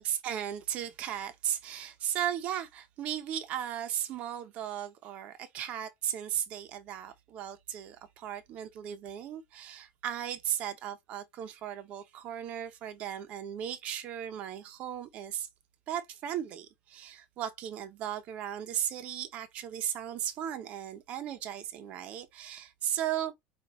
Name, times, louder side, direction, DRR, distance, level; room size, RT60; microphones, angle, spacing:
voice 1, 0.0-15.5 15.9-23.3, right 10 dB, 45° right, 0.8 m, -36 dB
5.3 x 2.5 x 3.1 m
supercardioid pair, 135°, 3 cm